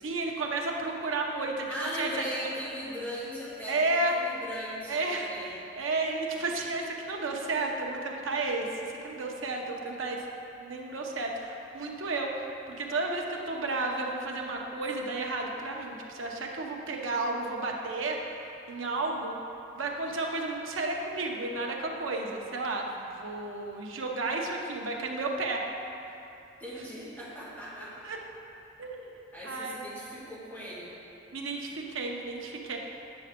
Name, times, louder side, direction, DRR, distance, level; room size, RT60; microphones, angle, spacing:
voice 1, 0.0-2.1 3.7-4.3 4.9-8.7 9.0-10.2 10.6-18.2 18.7-19.4 19.8-25.6 28.0-28.2 28.8-29.1 29.4-29.9 31.3-32.8, right 2 dB, 90° right, 1 dB, 0.8 m, -32 dB
voice 2, 1.7-5.5 26.6-28.0 29.3-30.9, equal, 10° left, -10 dB, 1.8 m, -38 dB
8.9 x 5.8 x 3.6 m, 2.9 s
head